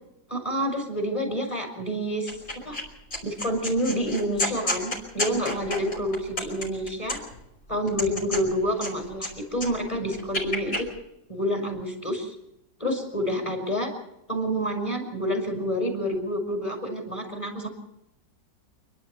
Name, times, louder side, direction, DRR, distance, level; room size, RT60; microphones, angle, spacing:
voice 1, 0.3-2.4 2.6-2.8 3.2-7.2 7.7-10.9 11.3-12.4 12.8-13.9 14.3-17.7, equal, 15° left, 4 dB, 5.7 m, -28 dB
sound 1, 2.3-2.8 3.1-7.4 7.9-9.3 9.6-10.8, left 1 dB, 45° left, 6.1 m, -31 dB
28.5 x 12.0 x 8.2 m, 0.84 s
omnidirectional pair, 1.9 m